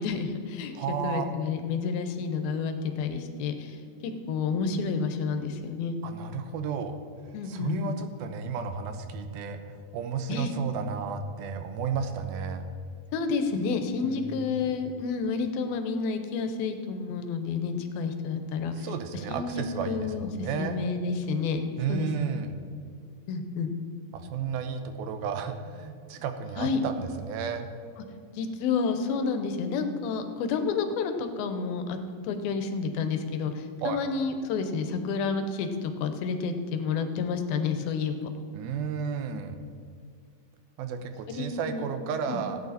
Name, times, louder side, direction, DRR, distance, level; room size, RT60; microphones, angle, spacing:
voice 1, 0.0-6.0 7.3-8.0 10.3-10.5 13.1-18.9 19.3-22.1 23.3-23.8 26.6-26.8 28.3-32.0 32.2-38.3 41.3-42.0 42.3-42.4, left 5 dB, 90° left, 7 dB, 2.8 m, -30 dB
voice 2, 0.7-1.3 6.0-7.0 7.5-12.6 14.0-14.7 18.8-20.8 21.8-22.6 24.1-27.7 33.8-34.1 38.5-39.6 40.8-42.6, right 6 dB, 90° right, 7 dB, 2.7 m, -33 dB
15.5 x 9.0 x 4.2 m, 2.3 s
omnidirectional pair, 4.1 m